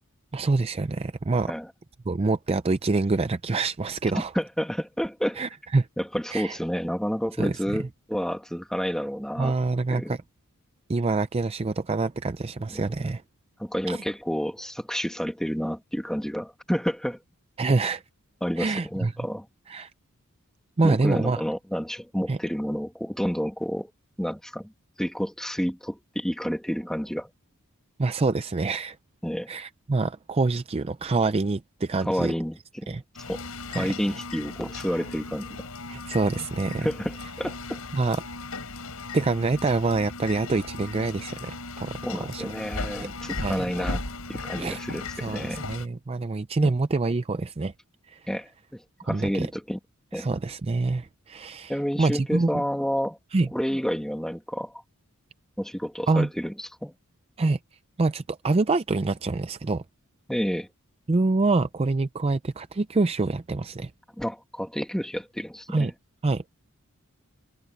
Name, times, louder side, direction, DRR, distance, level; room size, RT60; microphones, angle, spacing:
voice 1, 0.3-1.5 2.1-4.3 5.4-5.9 6.3-6.6 7.4-7.5 9.4-10.2 10.9-13.2 13.9-14.0 17.6-18.0 18.6-19.1 19.7-19.9 20.8-21.4 22.3-22.4 28.0-29.0 29.5-32.3 32.9-33.0 33.7-33.9 35.9-36.9 37.9-38.2 39.1-42.0 42.3-42.5 43.4-43.6 44.6-44.8 45.2-47.7 48.1-48.2 49.1-49.5 50.1-51.7 52.0-52.6 53.3-53.5 56.1-56.3 57.4-57.6 58.0-59.8 61.1-63.9 65.7-65.9 66.2-66.4, right 3 dB, 25° right, 0.4 m, -26 dB
voice 2, 4.1-5.4 6.0-9.5 9.9-10.2 12.7-13.1 13.6-17.2 18.4-19.5 20.8-23.9 24.2-24.7 25.0-27.3 29.2-29.5 32.0-33.4 33.7-35.7 36.8-37.8 42.0-44.0 44.3-45.7 46.6-46.8 48.3-49.8 50.1-50.3 51.7-53.2 53.5-54.8 55.6-56.9 60.3-60.7 64.2-65.9, equal, ahead, 1.7 m, -30 dB
Ceiling Fans, 33.1-45.9, left 3 dB, 85° left, 4.5 m, -37 dB
head